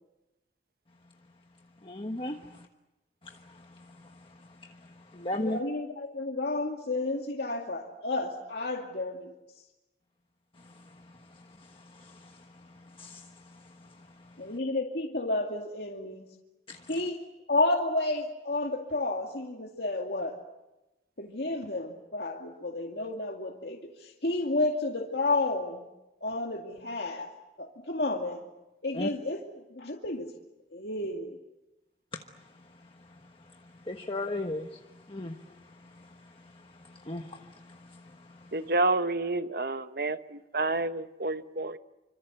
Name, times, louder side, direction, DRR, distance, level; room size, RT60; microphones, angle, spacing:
voice 1, 1.8-2.4 5.1-5.6 13.0-13.2 16.7-16.8 28.9-29.1 33.9-34.7 35.1-35.4 37.1-37.4 37.9-38.0, left 1 dB, 30° left, 3 dB, 1.3 m, -34 dB
voice 2, 5.3-9.4 14.4-16.2 16.9-17.2 17.5-20.4 21.2-25.9 26.2-27.3 27.6-28.4 28.8-30.3 30.7-31.4, left 2 dB, 70° left, 1 dB, 2.3 m, -31 dB
voice 3, 38.5-41.8, right 2 dB, 55° right, 10 dB, 1.0 m, -29 dB
27.0 x 25.5 x 8.0 m, 1.0 s
head